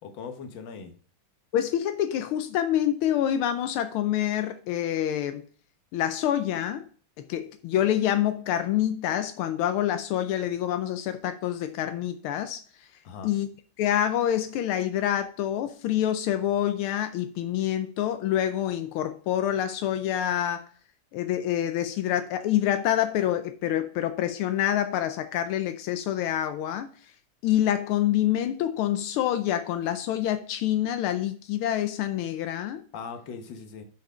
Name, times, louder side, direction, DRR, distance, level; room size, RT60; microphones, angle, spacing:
voice 1, 0.0-0.9 13.0-13.3 32.9-33.8, left 6 dB, 65° left, 1.8 m, -39 dB
voice 2, 1.5-5.4 5.9-6.8 7.3-12.6 13.2-13.5 13.8-20.6 21.1-26.9 27.4-32.8, left 11 dB, 85° left, 1.5 m, -26 dB
7.0 x 6.0 x 4.9 m
omnidirectional pair, 2.3 m